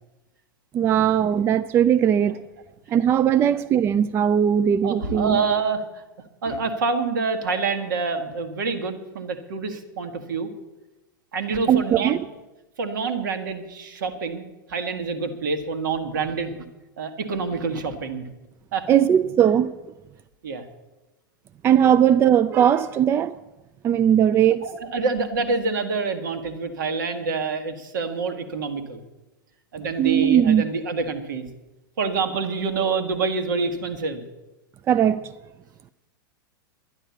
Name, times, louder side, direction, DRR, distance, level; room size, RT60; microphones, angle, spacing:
voice 1, 0.7-2.4 2.9-5.4 11.7-12.2 18.9-19.7 21.6-23.4 23.8-24.7 30.0-30.6 34.9-35.3, right 9 dB, 20° right, 0.3 m, -19 dB
voice 2, 4.8-5.8 6.4-10.5 11.3-12.1 12.8-16.5 17.0-18.3 18.7-18.9 20.4-20.6 21.8-21.9 24.6-29.0 29.7-31.5 32.0-34.2, right 4 dB, 60° right, 1.7 m, -27 dB
11.5 x 10.5 x 7.1 m
figure-of-eight pair, 95°, 11 cm